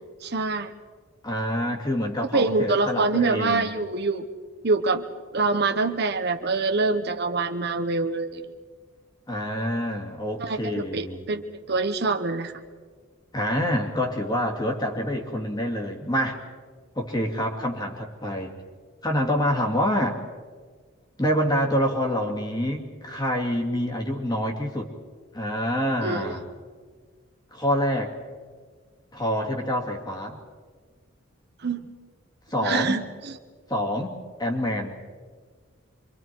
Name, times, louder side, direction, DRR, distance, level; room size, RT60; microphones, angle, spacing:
voice 1, 0.2-0.7 2.3-4.2 4.6-5.0 5.3-8.5 10.4-12.5 26.0-26.4 31.6-31.9 32.6-33.3, right 3 dB, 50° right, 7 dB, 1.0 m, -25 dB
voice 2, 1.2-3.7 9.3-11.2 13.3-16.4 17.0-18.5 19.0-20.2 21.2-24.9 25.3-26.4 27.5-28.1 29.1-30.4 32.5-33.0 33.7-35.0, equal, 20° left, 2 dB, 2.5 m, -26 dB
26.5 x 24.5 x 4.6 m, 1.6 s
head